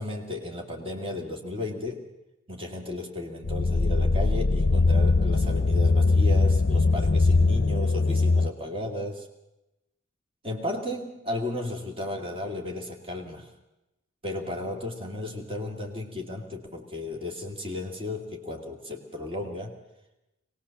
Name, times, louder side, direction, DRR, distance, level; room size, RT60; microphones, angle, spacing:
voice 1, 0.0-2.0 2.5-9.3 10.4-13.5 14.2-19.8, left 1 dB, 25° right, 1 dB, 2.5 m, -34 dB
sound 1, 3.4-8.5, left 3 dB, 50° left, 0.7 m, -21 dB
23.0 x 19.5 x 7.2 m, 0.92 s
head